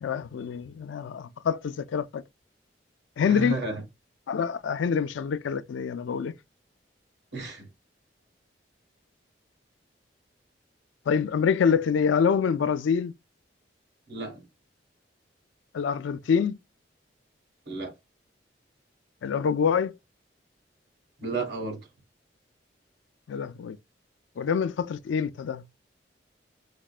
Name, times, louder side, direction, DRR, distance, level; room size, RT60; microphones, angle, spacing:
voice 1, 0.0-2.2 3.2-3.6 4.3-6.3 11.1-13.1 15.7-16.6 19.2-20.0 23.3-23.8 24.4-25.6, left 6 dB, 90° left, 0.3 m, -26 dB
voice 2, 3.2-3.8 7.3-7.7 14.1-14.4 17.7-18.0 21.2-21.8, right 3 dB, 65° right, 1.5 m, -32 dB
4.9 x 2.1 x 2.3 m
head